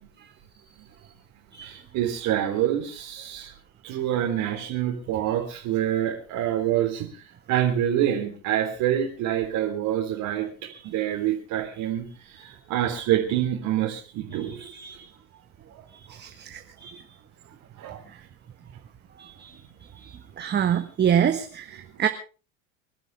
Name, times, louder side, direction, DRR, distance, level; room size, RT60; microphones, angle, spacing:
voice 1, 1.6-3.5 3.8-14.7 15.7-15.8 17.8-18.0, right 11 dB, 50° right, -1 dB, 3.7 m, -27 dB
voice 2, 14.3-15.1 16.1-17.0 19.2-19.5 20.0-22.1, right 9 dB, 25° right, 8 dB, 1.4 m, -27 dB
26.5 x 12.5 x 3.4 m, 0.36 s
hypercardioid pair, 85°, 41 cm